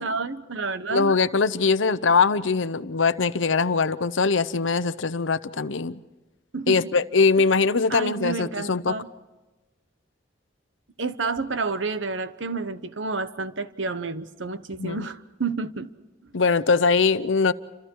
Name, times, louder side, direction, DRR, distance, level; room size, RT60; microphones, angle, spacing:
voice 1, 0.0-1.2 6.5-6.8 7.4-7.5 7.9-9.1 11.0-15.9, right 4 dB, 80° right, 1.1 m, -30 dB
voice 2, 0.9-6.0 6.7-8.9 14.8-15.1 16.3-17.5, left 4 dB, 85° left, 0.8 m, -22 dB
29.5 x 26.5 x 4.7 m
head